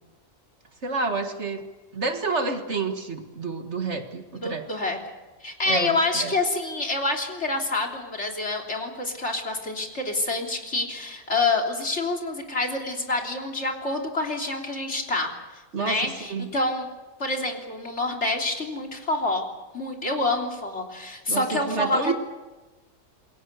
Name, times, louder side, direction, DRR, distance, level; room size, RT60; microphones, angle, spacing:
voice 1, 0.8-1.6 1.9-4.7 5.7-6.3 15.7-16.5 21.3-22.1, right 4 dB, 55° right, 6 dB, 2.0 m, -29 dB
voice 2, 4.3-5.0 5.4-15.3 15.8-16.9 17.2-19.4 19.7-22.1, left 2 dB, 50° left, 1 dB, 3.7 m, -27 dB
28.0 x 22.0 x 6.8 m, 1.2 s
omnidirectional pair, 1.5 m